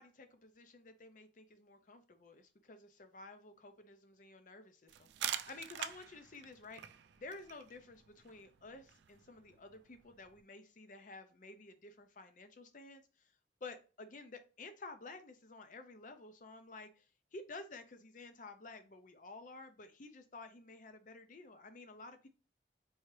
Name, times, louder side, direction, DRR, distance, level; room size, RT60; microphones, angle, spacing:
voice 1, 0.0-13.3 13.6-17.1 17.3-22.3, left 3 dB, 45° left, 8 dB, 0.6 m, -52 dB
sound 1, 4.9-10.4, right 11 dB, 70° right, 0.3 m, -46 dB
4.6 x 2.8 x 3.2 m, 0.34 s
head